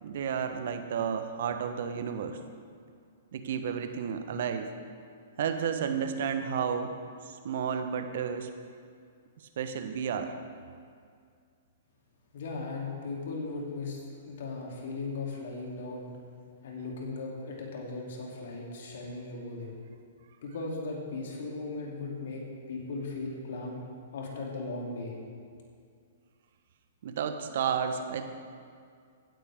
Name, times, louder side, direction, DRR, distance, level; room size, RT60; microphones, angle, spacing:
voice 1, 0.0-2.4 3.3-4.7 5.4-6.9 7.3-8.5 9.6-10.3 27.0-28.3, right 7 dB, 60° right, 8 dB, 1.0 m, -32 dB
voice 2, 12.3-14.0 14.3-16.1 16.6-19.7 20.4-23.8 24.1-25.2, left 3 dB, 65° left, -1 dB, 2.8 m, -37 dB
15.5 x 9.9 x 3.6 m, 2.2 s
hypercardioid pair, 120°, 0 cm